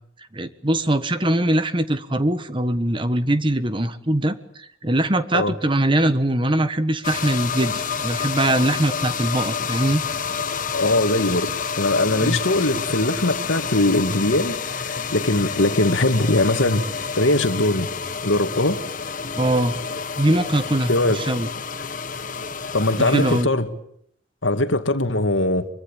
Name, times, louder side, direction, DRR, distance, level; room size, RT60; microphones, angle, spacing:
voice 1, 0.3-10.0 12.2-12.4 19.4-19.7 20.2-21.5 23.0-23.5, right 1 dB, 25° right, 1.4 m, -22 dB
sound 1, 7.0-23.4, left 6 dB, 45° left, 1.3 m, -29 dB
voice 2, 10.7-17.9 18.2-18.8 20.9-21.2 22.7-23.7 24.4-25.7, left 2 dB, 85° left, 2.1 m, -21 dB
25.0 x 23.5 x 9.0 m
head